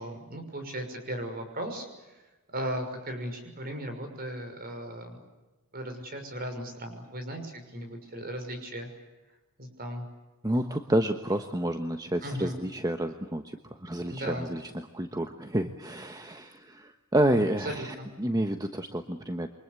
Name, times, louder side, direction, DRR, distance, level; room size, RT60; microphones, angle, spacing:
voice 1, 0.0-2.2 2.5-5.2 5.7-8.9 9.6-10.0 12.2-12.6 14.1-14.5 17.6-18.1, equal, 45° right, 6 dB, 6.1 m, -36 dB
voice 2, 10.4-19.5, right 1 dB, 15° right, 6 dB, 1.2 m, -29 dB
28.5 x 24.5 x 8.3 m, 1.1 s
head